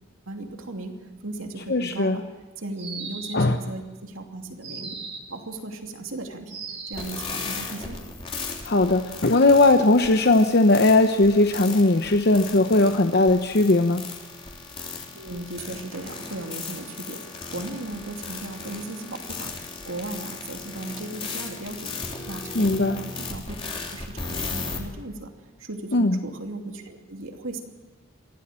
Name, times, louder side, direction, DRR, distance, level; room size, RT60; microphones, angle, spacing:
voice 1, 0.3-2.2 2.6-4.9 5.3-6.6 6.9-8.0 15.1-17.2 17.5-21.9 22.3-23.5 23.9-25.3 25.6-27.6, right 2 dB, 70° right, 3 dB, 2.8 m, -36 dB
voice 2, 1.7-2.2 3.3-3.6 8.6-14.0 22.5-23.0 25.9-26.2, left 2 dB, 50° left, 6 dB, 0.9 m, -19 dB
sound 1, 2.8-3.6 4.6-5.4 6.5-7.2, right 5 dB, 30° right, 3.0 m, -37 dB
sound 2, 6.9-24.8, left 4 dB, 25° left, 3.3 m, -36 dB
23.5 x 16.0 x 7.6 m, 1.3 s
head